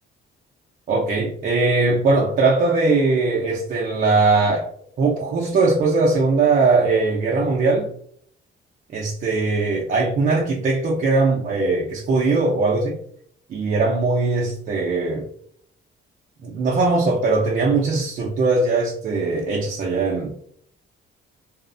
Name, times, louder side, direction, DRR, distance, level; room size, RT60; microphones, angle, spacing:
voice 1, 0.9-4.7 5.0-7.9 8.9-13.0 13.5-15.3 16.4-20.3, right 3 dB, 40° right, -2 dB, 0.4 m, -20 dB
2.9 x 2.0 x 2.5 m, 0.63 s
cardioid pair, 155°, 21 cm